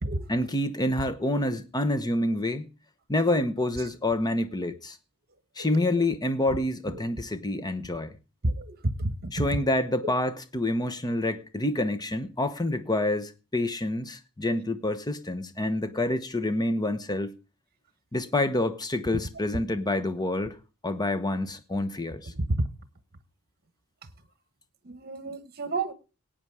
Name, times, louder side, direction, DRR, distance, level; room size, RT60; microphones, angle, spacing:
voice 1, 0.3-2.7 3.1-5.0 5.6-8.1 9.3-17.4 18.1-20.6 20.8-22.3, left 1 dB, 20° left, 1.0 m, -27 dB
voice 2, 8.4-9.1 9.5-9.7 10.0-10.1 19.1-19.2 22.4-22.5 24.8-25.9, right 2 dB, 45° right, 1.3 m, -31 dB
17.5 x 8.9 x 4.8 m
head